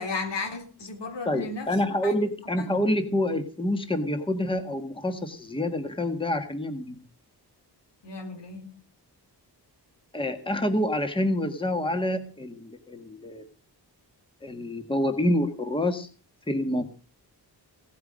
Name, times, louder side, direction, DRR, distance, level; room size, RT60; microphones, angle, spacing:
voice 1, 0.0-1.7 2.0-2.2 8.0-8.8, left 3 dB, 90° left, 3.8 m, -34 dB
voice 2, 1.3-7.0 10.1-13.4 14.4-16.1 16.5-16.8, left 1 dB, 10° left, 1.5 m, -27 dB
17.0 x 9.5 x 6.3 m
wide cardioid pair, 180°, 41 cm